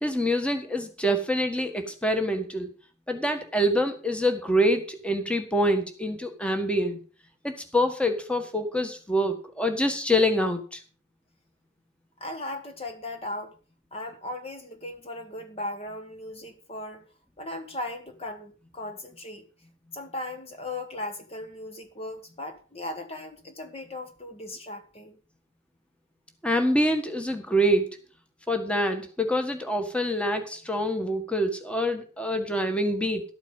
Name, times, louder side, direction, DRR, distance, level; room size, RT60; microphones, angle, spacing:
voice 1, 0.0-2.7 3.1-7.0 7.4-10.8 26.4-27.9 28.5-33.2, equal, 5° left, 1.6 m, -26 dB
voice 2, 12.2-13.5 13.9-17.0 17.4-19.5 19.9-25.2, left 1 dB, 30° left, 1.5 m, -37 dB
12.5 x 8.9 x 5.5 m
head